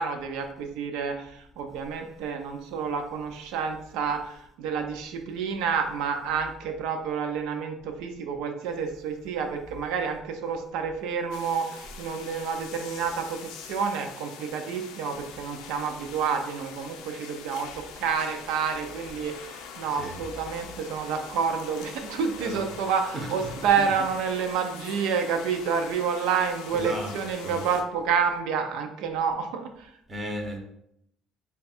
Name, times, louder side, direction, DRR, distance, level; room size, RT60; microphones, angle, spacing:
voice 1, 0.0-29.9, right 6 dB, 85° right, 4 dB, 0.4 m, -29 dB
sound 1, 11.3-27.8, left 7 dB, 85° left, 0.4 m, -43 dB
voice 2, 30.1-30.6, right 1 dB, 15° right, 1 dB, 0.6 m, -34 dB
3.3 x 2.3 x 4.1 m, 0.76 s
cardioid pair, 160°, 0 cm